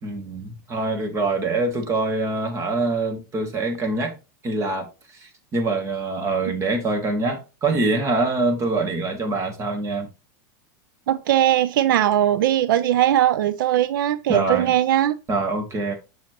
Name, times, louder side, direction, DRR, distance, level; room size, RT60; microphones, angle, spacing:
voice 1, 0.0-4.1 4.4-4.9 5.2-10.1 14.3-14.7 15.3-16.0, right 3 dB, 25° right, 2.1 m, -24 dB
voice 2, 11.1-15.2, right 12 dB, 80° right, 0.6 m, -20 dB
7.1 x 6.4 x 3.0 m
supercardioid pair, 135°, 11 cm